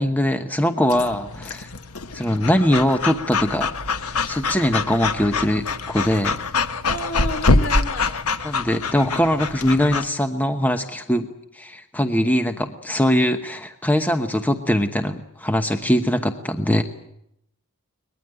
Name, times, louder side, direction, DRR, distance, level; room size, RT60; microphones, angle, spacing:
voice 1, 0.0-1.7 2.1-3.7 4.3-6.4 8.4-11.3 11.5-16.8, equal, 10° left, 7 dB, 1.0 m, -21 dB
Breathing / Dog, 0.9-10.0, left 3 dB, 80° left, 1.2 m, -25 dB
voice 2, 6.9-8.2, left 1 dB, 65° left, 8 dB, 3.3 m, -30 dB
22.0 x 21.0 x 8.9 m, 0.78 s
head